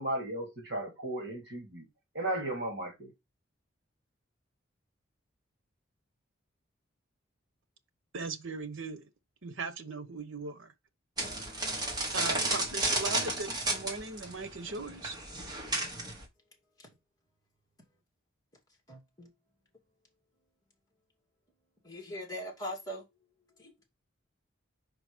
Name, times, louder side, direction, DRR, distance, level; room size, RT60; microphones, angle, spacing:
voice 1, 0.0-1.8 2.1-3.1, right 1 dB, 55° right, 3.0 m, -35 dB
voice 2, 8.1-9.1 9.4-10.7 12.1-15.2, right 3 dB, 80° right, 1.0 m, -38 dB
sound 1, 11.2-16.3, right 2 dB, 20° right, 1.5 m, -33 dB
voice 3, 18.9-19.3 21.8-23.0 23.6-23.7, equal, 20° left, 2.7 m, -40 dB
5.3 x 4.9 x 5.0 m
head